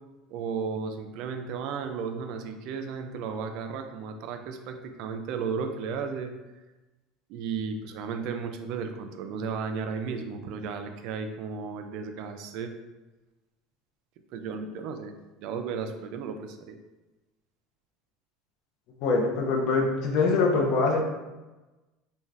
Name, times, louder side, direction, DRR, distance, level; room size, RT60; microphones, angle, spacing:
voice 1, 0.3-6.3 7.3-12.7 14.3-16.8, right 5 dB, 65° right, 6 dB, 0.3 m, -34 dB
voice 2, 19.0-21.0, left 3 dB, 60° left, 0 dB, 0.6 m, -24 dB
2.5 x 2.2 x 3.2 m, 1.1 s
supercardioid pair, 125°, 0 cm